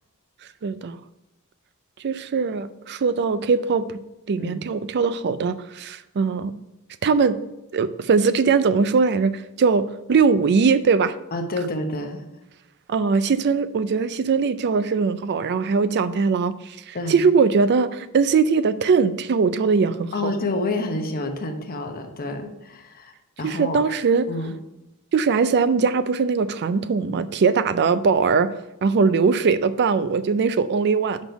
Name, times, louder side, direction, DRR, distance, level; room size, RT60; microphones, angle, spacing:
voice 1, 0.6-1.0 2.0-4.0 4.3-6.5 7.0-7.4 7.7-11.1 12.9-20.3 23.4-24.3 25.1-28.5 28.8-31.2, right 5 dB, 50° right, 14 dB, 0.4 m, -21 dB
voice 2, 11.3-12.2 16.9-17.3 20.1-23.1 23.4-23.8 24.3-24.6, left 2 dB, 40° left, 5 dB, 0.9 m, -28 dB
6.2 x 5.3 x 4.6 m, 0.95 s
head